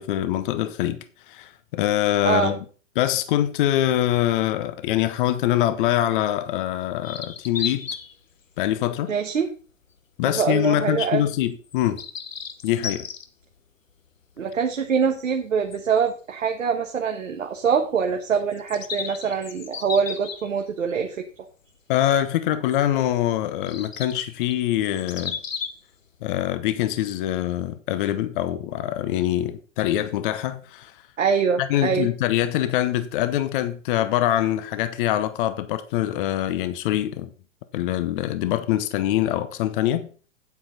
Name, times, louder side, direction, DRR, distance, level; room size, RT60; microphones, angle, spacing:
voice 1, 0.0-2.6 3.0-7.9 8.6-9.1 10.2-12.0 12.6-13.1 21.9-25.4 26.2-30.9 31.6-37.3 37.7-40.1, left 12 dB, 40° left, 0.9 m, -24 dB
sound 1, 7.0-8.1 8.7-8.9 9.7-9.8 11.6-13.3 15.7-15.8 16.1-16.2 18.5-20.9 22.7-22.8 23.6-25.8, left 6 dB, 80° left, 1.2 m, -34 dB
voice 2, 9.1-9.5 10.2-11.2 14.4-21.3 31.2-32.1, right 6 dB, 75° right, 1.3 m, -24 dB
8.9 x 8.4 x 4.0 m
figure-of-eight pair, 110°, 39 cm